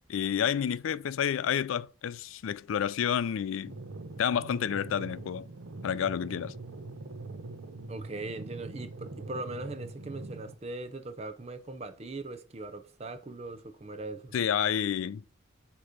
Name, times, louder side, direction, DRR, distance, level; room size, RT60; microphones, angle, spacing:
voice 1, 0.1-3.7 4.2-5.5 5.8-6.5 14.3-15.2, left 8 dB, 85° left, 0.3 m, -29 dB
sound 1, 3.7-10.6, right 2 dB, 75° right, 0.7 m, -43 dB
voice 2, 7.9-14.3, right 2 dB, 30° right, 0.6 m, -40 dB
7.9 x 2.9 x 5.1 m
head